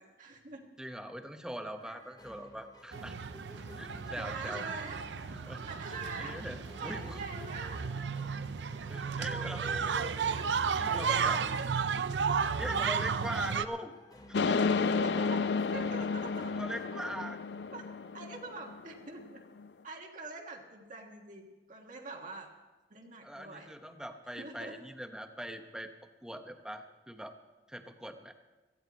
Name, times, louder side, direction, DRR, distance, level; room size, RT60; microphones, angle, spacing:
voice 1, 0.0-0.7 4.2-5.1 5.7-6.4 6.8-7.9 9.2-10.6 10.9-11.7 15.0-16.5 17.7-17.8 18.1-19.4 19.8-22.5 22.9-23.7 24.4-24.8, right 3 dB, 50° right, 1 dB, 1.5 m, -44 dB
voice 2, 0.8-3.2 3.8-4.6 5.5-5.6 5.9-7.2 8.9-9.8 10.8-11.4 12.5-13.9 14.3-14.7 16.5-17.4 23.2-25.9 26.2-27.3 27.7-28.3, equal, 5° right, 6 dB, 0.9 m, -41 dB
sound 1, 1.8-16.9, left 1 dB, 20° left, 1.1 m, -54 dB
sound 2, 2.9-13.6, right 6 dB, 85° right, 0.5 m, -33 dB
sound 3, 14.3-18.8 19.2-19.3 19.6-19.7, left 4 dB, 75° left, 0.5 m, -31 dB
17.5 x 14.5 x 4.1 m, 1.2 s
head